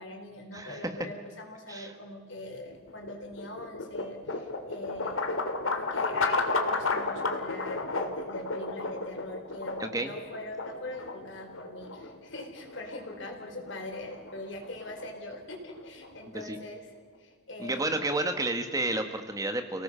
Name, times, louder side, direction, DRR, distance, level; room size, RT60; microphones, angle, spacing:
voice 1, 0.0-5.3 5.7-16.9 17.2-18.1, left 1 dB, 60° left, 3 dB, 4.3 m, -42 dB
sound 1, 2.7-16.8, left 3 dB, 80° left, 2.3 m, -33 dB
voice 2, 9.8-10.1 16.3-16.6 17.6-19.8, right 2 dB, 15° right, 6 dB, 1.3 m, -31 dB
30.0 x 18.0 x 5.6 m, 1.5 s
head